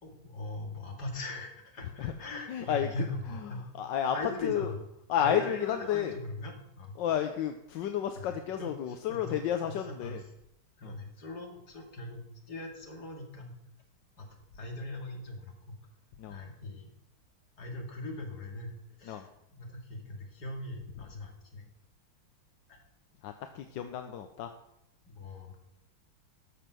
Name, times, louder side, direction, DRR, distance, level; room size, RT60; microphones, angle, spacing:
voice 1, 0.0-3.6 4.1-4.8 5.2-6.9 8.3-10.2 10.8-13.5 14.2-14.3 14.5-15.8 16.3-16.9 17.6-21.6 22.7-22.8 25.2-25.6, left 2 dB, 50° left, 1 dB, 2.7 m, -40 dB
voice 2, 2.5-3.1 3.3-4.2 4.4-4.7 5.1-6.2 7.0-10.2 10.8-11.0 16.2-16.4 19.0-19.3 23.2-24.5, left 9 dB, 70° left, 6 dB, 1.3 m, -32 dB
13.5 x 7.1 x 6.2 m, 0.81 s
omnidirectional pair, 2.3 m